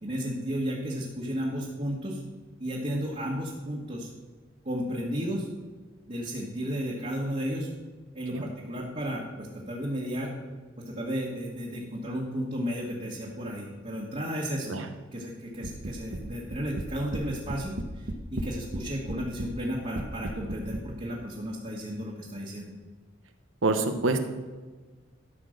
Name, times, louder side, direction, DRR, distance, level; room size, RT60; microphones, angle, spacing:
voice 1, 0.0-2.2 2.6-4.1 4.6-5.5 6.1-7.7 8.1-10.3 10.8-14.7 15.1-22.7, equal, 35° right, -4 dB, 1.7 m, -33 dB
sound 1, 15.6-16.2 16.5-17.2 17.5-18.8 19.1-19.5 20.0-20.9, right 1 dB, 65° right, 1.0 m, -34 dB
voice 2, 23.6-24.2, right 3 dB, 85° right, 7 dB, 1.1 m, -25 dB
12.5 x 6.0 x 6.5 m, 1.3 s
head